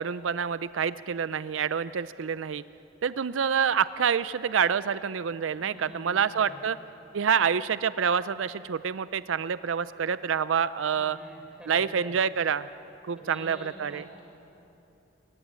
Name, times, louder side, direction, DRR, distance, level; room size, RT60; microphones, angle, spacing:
voice 1, 0.0-2.6 3.0-6.8 7.1-11.2 11.7-12.7 13.1-14.1, right 7 dB, 85° right, 16 dB, 0.5 m, -27 dB
voice 2, 5.6-6.6 10.9-12.2 13.2-14.2, equal, 5° right, 0 dB, 4.4 m, -47 dB
24.0 x 19.0 x 9.5 m, 2.9 s
head